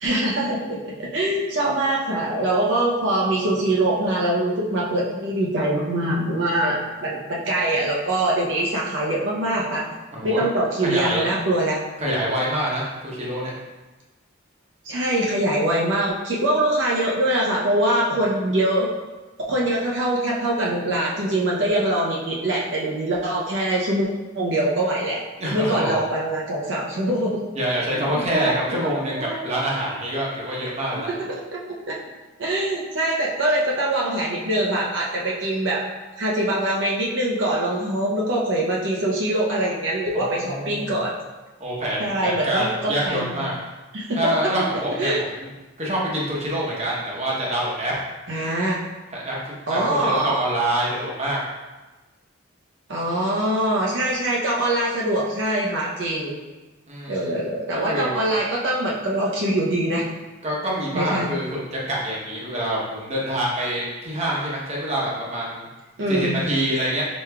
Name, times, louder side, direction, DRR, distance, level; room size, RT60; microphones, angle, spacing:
voice 1, 0.0-9.8 10.2-11.8 14.8-18.9 19.5-24.1 24.3-25.2 25.5-27.4 27.9-29.4 31.1-31.6 31.9-32.0 32.4-35.8 36.2-41.1 42.0-43.4 43.9-44.2 44.4-44.5 44.9-45.2 48.3-48.8 49.7-50.4 52.9-56.4 57.1-60.1 60.9-61.3 66.0-66.4, right 1 dB, 70° right, -4 dB, 0.7 m, -23 dB
voice 2, 10.1-10.4 10.8-11.3 12.0-13.5 25.4-26.0 27.5-31.1 40.1-40.9 41.6-43.5 44.1-45.5 45.8-47.9 49.1-51.4 56.9-57.2 57.7-58.2 60.4-65.6 66.1-67.1, right 1 dB, 35° right, -5 dB, 0.9 m, -26 dB
5.0 x 3.5 x 2.3 m, 1.2 s
head